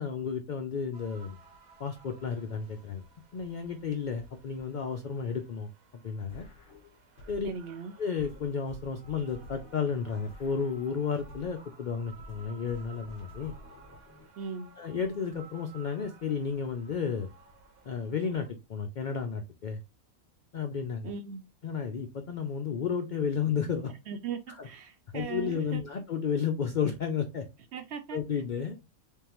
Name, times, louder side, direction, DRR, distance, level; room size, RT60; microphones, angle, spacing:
voice 1, 0.0-1.4 1.8-3.0 3.3-5.7 6.0-6.5 7.3-7.5 8.0-13.5 14.8-17.3 17.9-19.8 20.5-21.1 21.6-23.9 24.6-24.7 25.1-27.5 28.1-28.8, left 6 dB, 80° left, 0.4 m, -32 dB
sound 1, 0.9-18.5, right 4 dB, 80° right, 1.4 m, -56 dB
sound 2, 6.3-7.7 8.2-11.7 12.2-14.3, left 1 dB, 45° left, 1.6 m, -51 dB
voice 2, 7.4-7.9 14.4-14.7 21.0-21.4 24.1-25.8 27.7-28.2, right 6 dB, 60° right, 0.8 m, -38 dB
3.7 x 3.6 x 3.0 m
omnidirectional pair, 1.5 m